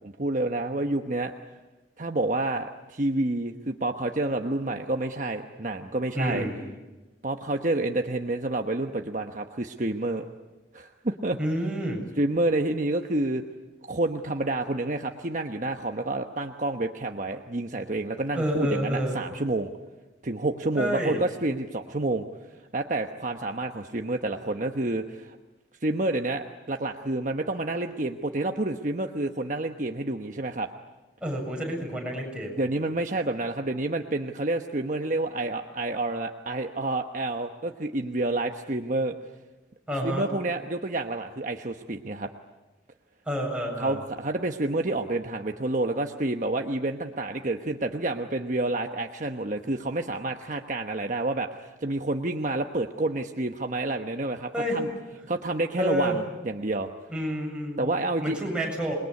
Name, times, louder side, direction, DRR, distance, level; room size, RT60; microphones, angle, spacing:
voice 1, 0.0-1.3 2.0-6.4 7.2-10.2 10.7-11.4 12.2-13.4 13.8-19.7 20.2-22.3 22.7-25.4 25.8-30.7 32.5-39.2 40.0-42.3 43.8-54.9 55.3-56.9 57.8-58.4, right 2 dB, 45° right, 4 dB, 1.1 m, -29 dB
voice 2, 6.1-6.6 11.4-12.0 18.3-19.2 20.8-21.2 31.2-32.6 39.9-40.3 43.3-44.0 54.5-54.8 55.8-56.2 57.1-57.8 58.2-58.9, equal, 5° right, -2 dB, 7.4 m, -29 dB
27.5 x 21.5 x 9.6 m, 1.1 s
head